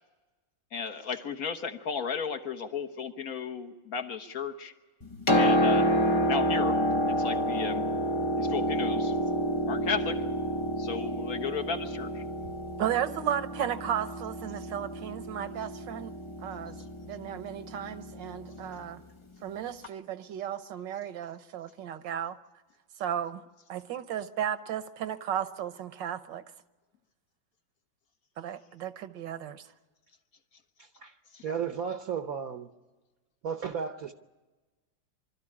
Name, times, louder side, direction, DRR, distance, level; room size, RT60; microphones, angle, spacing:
voice 1, 0.7-4.7 5.4-6.0 6.3-6.8 7.1-7.8 8.4-9.1 9.7-10.2 10.8-12.2 31.3-31.4, left 6 dB, 55° left, 5 dB, 1.6 m, -34 dB
Piano, 5.0-18.8 19.8-19.9, equal, 30° left, 0.5 m, -29 dB
voice 2, 12.8-16.1 16.4-16.8 17.0-19.0 19.4-22.4 23.0-23.4 23.7-26.4 28.4-29.6, right 9 dB, 75° right, 11 dB, 1.6 m, -34 dB
voice 3, 30.8-31.1 31.4-32.7 33.4-34.1, right 7 dB, 55° right, 7 dB, 1.1 m, -34 dB
24.5 x 13.0 x 9.9 m, 1.2 s
omnidirectional pair, 2.1 m